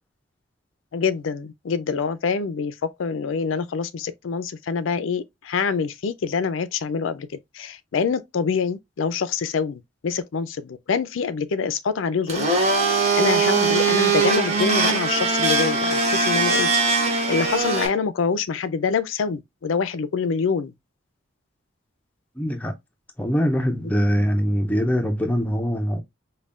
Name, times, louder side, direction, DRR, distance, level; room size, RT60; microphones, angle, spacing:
voice 1, 0.9-12.5 13.2-16.7 17.3-20.7, left 5 dB, 85° left, 0.4 m, -25 dB
Domestic sounds home sounds, 12.3-17.9, right 4 dB, 35° right, 0.9 m, -21 dB
voice 2, 22.4-22.7 23.2-26.0, equal, 10° left, 0.5 m, -23 dB
5.3 x 2.2 x 2.4 m
head